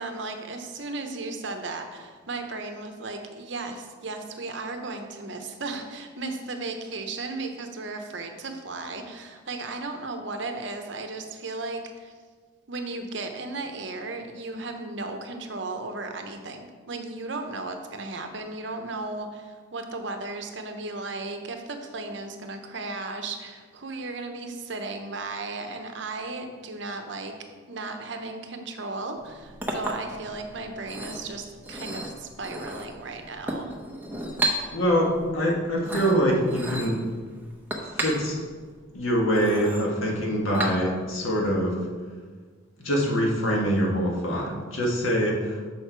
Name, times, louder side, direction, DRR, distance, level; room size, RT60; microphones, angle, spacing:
voice 1, 0.0-12.1 12.7-27.4 27.7-33.8, right 3 dB, 60° right, 5 dB, 0.8 m, -35 dB
Chink clink, 29.2-41.2, right 1 dB, 10° right, 0.8 m, -35 dB
voice 2, 34.7-37.0 38.0-38.4 38.9-41.9 42.8-45.7, equal, 85° left, -1 dB, 1.6 m, -24 dB
6.5 x 6.3 x 4.5 m, 1.5 s
head